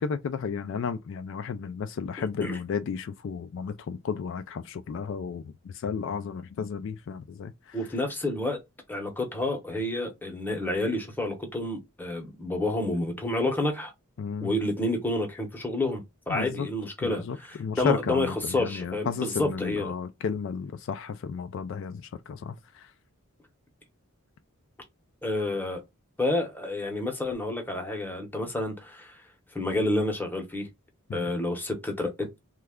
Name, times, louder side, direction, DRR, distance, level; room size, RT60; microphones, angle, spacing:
voice 1, 0.0-7.8 14.2-14.5 16.3-16.7 17.0-22.9 31.1-31.3, left 6 dB, 60° left, 0.3 m, -33 dB
voice 2, 7.7-8.6 8.9-13.9 14.4-19.9 25.2-25.8 26.2-29.1 29.5-30.7 31.1-32.3, left 2 dB, 10° left, 0.8 m, -29 dB
3.1 x 2.3 x 3.5 m
head